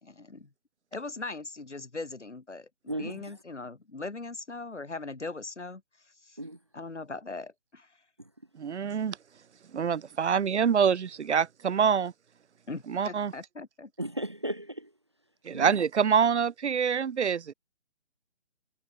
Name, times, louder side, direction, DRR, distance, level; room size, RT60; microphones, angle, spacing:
voice 1, 0.0-0.5 0.9-5.8 6.2-6.4 6.7-7.9 12.7-13.9, left 3 dB, 80° left, 2.8 m, -40 dB
voice 2, 8.6-9.2 9.7-12.1 12.9-13.3 15.4-17.5, right 7 dB, 75° right, 0.6 m, -26 dB
voice 3, 14.0-14.9 15.5-15.7, right 1 dB, 25° right, 0.4 m, -34 dB
figure-of-eight pair, 150°, 35 cm